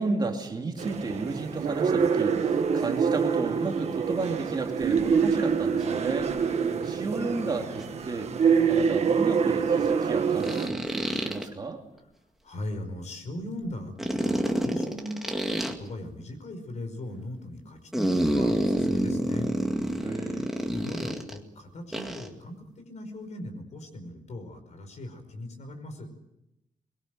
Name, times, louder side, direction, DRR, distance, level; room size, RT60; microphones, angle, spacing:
voice 1, 0.0-8.3 8.7-11.8 20.0-20.5, right 3 dB, 30° right, 2 dB, 2.7 m, -33 dB
sound 1, 0.8-10.7, right 6 dB, 50° right, 1.6 m, -26 dB
sound 2, 7.8-7.9 10.4-11.4 14.0-15.7 17.9-21.4 21.9-22.3, equal, ahead, 2.1 m, -28 dB
voice 2, 12.4-19.6 20.7-26.1, left 1 dB, 60° left, 7 dB, 5.2 m, -39 dB
23.5 x 22.0 x 7.9 m, 0.89 s
wide cardioid pair, 170°, 14 cm